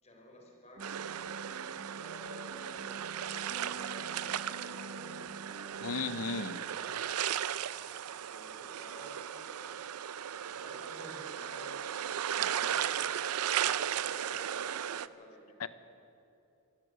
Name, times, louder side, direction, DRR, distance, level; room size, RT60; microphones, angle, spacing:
voice 1, 0.0-1.3 1.9-5.7 6.6-7.9 8.3-9.8 10.5-11.9 12.3-15.6, left 1 dB, 30° left, 0 dB, 4.0 m, -54 dB
sound 1, 0.7-6.6, right 1 dB, 55° right, 1.2 m, -48 dB
sound 2, 0.8-15.1, right 9 dB, 85° right, 0.5 m, -36 dB
voice 2, 5.8-6.6 15.6-15.7, left 4 dB, 80° left, 13 dB, 0.8 m, -35 dB
25.5 x 16.0 x 6.4 m, 2.8 s
head